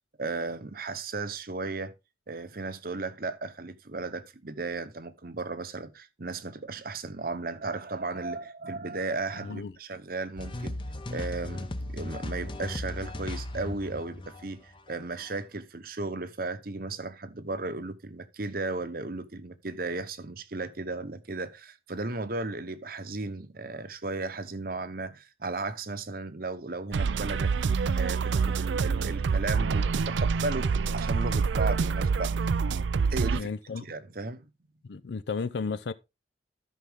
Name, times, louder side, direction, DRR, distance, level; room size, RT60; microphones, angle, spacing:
voice 1, 0.2-1.9 2.3-10.8 11.1-27.5 27.9-32.3 33.1-33.5 33.8-34.4, right 3 dB, 50° right, 0.9 m, -35 dB
sound 1, 10.4-15.3, left 1 dB, 25° left, 0.8 m, -36 dB
sound 2, 26.9-33.4, right 5 dB, 75° right, 0.4 m, -26 dB
voice 2, 33.3-33.8 34.8-35.9, left 4 dB, 65° left, 0.5 m, -33 dB
13.0 x 5.7 x 3.6 m
head